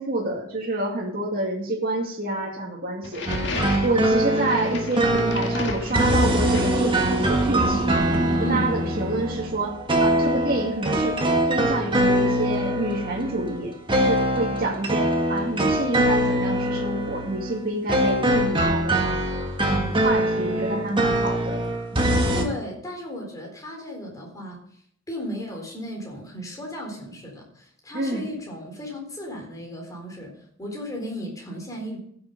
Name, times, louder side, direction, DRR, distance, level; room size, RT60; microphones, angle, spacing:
voice 1, 0.0-3.2 3.8-8.0 8.5-11.2 11.5-13.7 14.0-19.0 19.6-21.6 27.9-28.3, right 2 dB, 45° right, -2 dB, 2.3 m, -28 dB
sound 1, 3.0-7.4, left 3 dB, 60° left, 1.8 m, -35 dB
sound 2, 3.3-22.4, right 1 dB, 25° right, 1.6 m, -23 dB
voice 2, 22.4-24.6 25.1-32.0, equal, 15° left, 0 dB, 3.9 m, -35 dB
15.0 x 7.0 x 5.4 m, 0.66 s
head